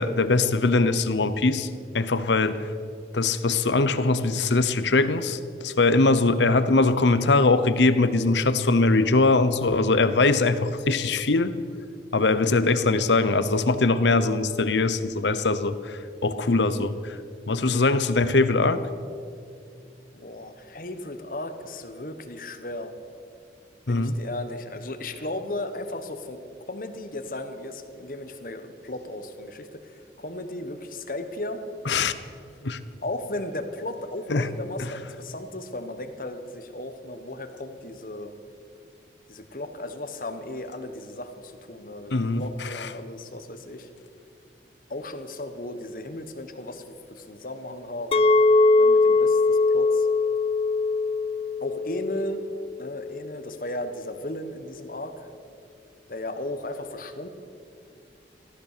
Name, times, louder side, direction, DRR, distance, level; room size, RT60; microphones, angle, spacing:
voice 1, 0.0-1.7 1.9-2.7 3.1-11.5 12.1-17.2 17.5-18.8 23.9-24.1 31.9-32.1 32.6-32.8 34.3-34.5 42.1-42.9, left 3 dB, 85° left, 13 dB, 0.8 m, -22 dB
voice 2, 20.1-22.9 23.9-26.4 26.7-31.6 33.0-38.3 39.3-43.9 44.9-48.3 48.8-50.1 51.6-52.4 52.8-55.3 56.1-57.3, left 1 dB, 50° left, 8 dB, 1.2 m, -35 dB
Chink clink, 48.1-53.3, left 3 dB, 30° left, 0.4 m, -21 dB
15.0 x 13.5 x 6.7 m, 2.4 s
head